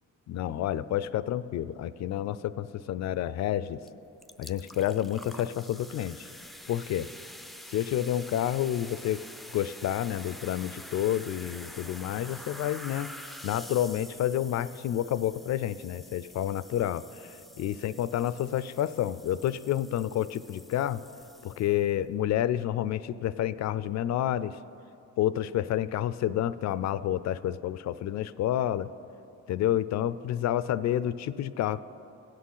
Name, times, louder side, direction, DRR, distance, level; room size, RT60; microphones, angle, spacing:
voice 1, 0.3-3.8 4.4-6.3 6.7-7.1 7.7-9.2 9.5-13.1 13.4-21.0 21.4-24.6 25.2-28.9 29.5-31.8, left 11 dB, 65° left, 16 dB, 0.4 m, -29 dB
sound 1, 3.8-3.9 4.2-21.9, left 1 dB, ahead, 0.4 m, -47 dB
17.0 x 6.5 x 5.6 m, 2.9 s
cardioid pair, 90°, 30 cm